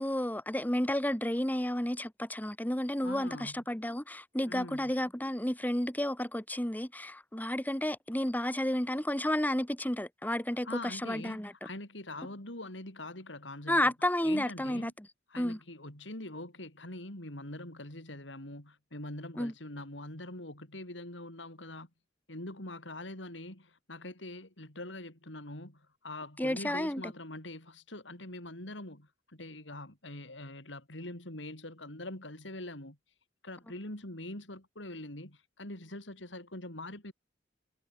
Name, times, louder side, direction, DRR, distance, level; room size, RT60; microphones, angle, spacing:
voice 1, 0.0-11.5 13.7-15.1 15.4-15.6 19.4-19.5 26.4-27.1, left 1 dB, 10° left, 1.9 m, -31 dB
voice 2, 3.0-3.6 4.5-4.9 10.6-13.9 14.2-14.9 15.3-21.9 22.3-33.0 33.4-37.1, left 1 dB, 80° left, 5.4 m, -43 dB
head